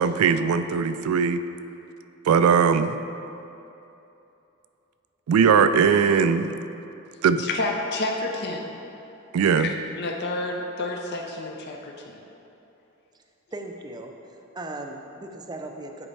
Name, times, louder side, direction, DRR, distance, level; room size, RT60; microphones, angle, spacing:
voice 1, 0.0-1.4 2.3-3.0 5.3-6.5 7.2-7.4 9.3-9.7, right 6 dB, 90° right, 11 dB, 0.3 m, -20 dB
voice 2, 7.4-8.7 9.6-12.2, left 2 dB, 50° left, 1 dB, 0.6 m, -30 dB
voice 3, 13.5-16.1, right 2 dB, 20° right, 3 dB, 0.4 m, -38 dB
9.8 x 4.4 x 3.2 m, 2.9 s
head